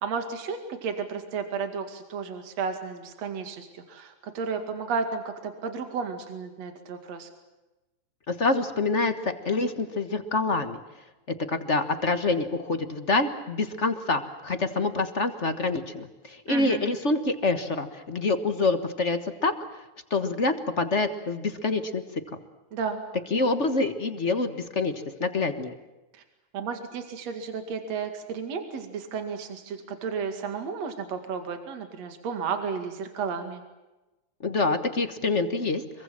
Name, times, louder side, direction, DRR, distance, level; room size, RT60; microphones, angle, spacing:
voice 1, 0.0-7.3 16.5-16.8 22.7-23.0 26.1-26.2 26.5-33.6, right 5 dB, 65° right, 6 dB, 3.4 m, -33 dB
voice 2, 8.3-10.8 11.3-19.5 20.1-22.0 23.3-25.7 34.4-36.0, left 3 dB, 35° left, 8 dB, 1.1 m, -26 dB
26.5 x 23.0 x 7.7 m, 1.1 s
omnidirectional pair, 3.3 m